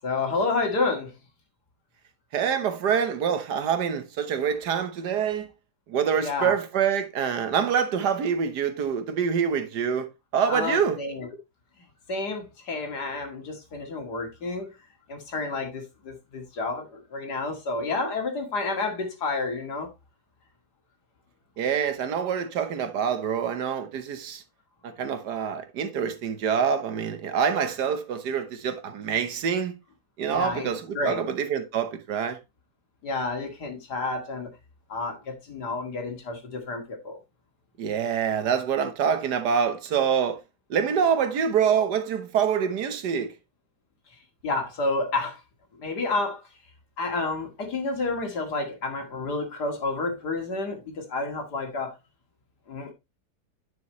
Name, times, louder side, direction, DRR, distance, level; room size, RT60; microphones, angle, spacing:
voice 1, 0.0-1.1 6.2-6.5 10.4-11.3 12.1-14.7 15.1-19.9 30.3-31.2 33.0-34.5 34.9-37.2 44.4-45.4 45.8-46.4 47.0-51.9 52.7-52.9, left 3 dB, 80° left, 2.6 m, -30 dB
voice 2, 2.3-5.5 5.9-10.1 10.3-11.0 21.6-24.4 25.0-29.7 30.2-32.4 37.8-40.4 40.7-43.3, right 7 dB, 85° right, 1.6 m, -26 dB
9.7 x 6.3 x 3.0 m
omnidirectional pair, 1.7 m